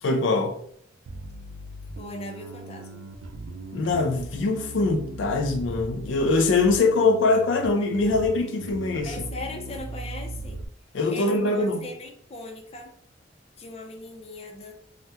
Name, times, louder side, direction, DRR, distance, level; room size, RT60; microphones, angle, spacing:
voice 1, 0.0-0.5 3.7-9.1 10.9-11.9, left 3 dB, 85° left, 0.5 m, -23 dB
Bass guitar, 1.1-10.7, right 2 dB, 85° right, 0.4 m, -39 dB
voice 2, 2.0-3.1 9.0-10.6 11.1-12.9 13.6-14.7, left 2 dB, 35° left, 0.5 m, -39 dB
2.8 x 2.1 x 3.3 m
head